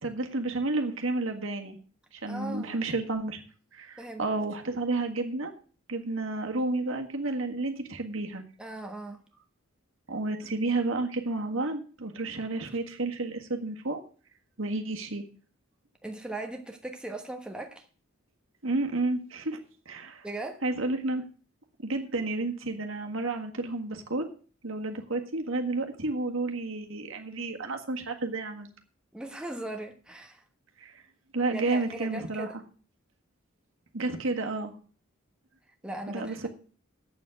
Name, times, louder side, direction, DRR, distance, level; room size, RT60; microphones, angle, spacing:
voice 1, 0.0-1.8 2.1-3.4 3.7-5.5 5.9-8.4 10.1-14.0 14.6-15.2 18.6-19.6 19.8-20.3 20.6-21.2 21.8-24.3 24.6-28.7 30.8-30.9 31.3-32.5 33.9-34.7 36.1-36.5, right 2 dB, 70° right, 1.7 m, -31 dB
voice 2, 2.3-2.8 4.0-4.3 8.6-9.2 16.0-17.9 20.2-20.6 29.1-30.4 31.5-32.6 35.8-36.5, right 2 dB, 5° right, 1.1 m, -38 dB
8.4 x 7.3 x 7.8 m
head